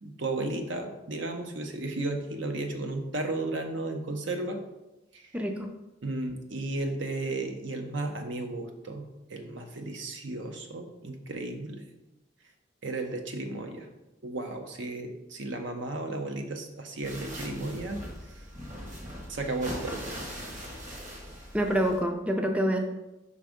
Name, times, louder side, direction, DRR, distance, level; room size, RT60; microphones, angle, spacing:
voice 1, 0.0-4.6 5.1-5.2 6.0-11.9 12.8-13.9 14.2-18.0 19.3-20.0, right 2 dB, 70° right, 4 dB, 0.8 m, -34 dB
voice 2, 5.3-5.7 21.5-22.8, equal, 5° right, 3 dB, 0.4 m, -26 dB
sound 1, 17.0-22.0, equal, 40° right, 1.4 m, -40 dB
5.5 x 3.5 x 5.0 m, 0.98 s
head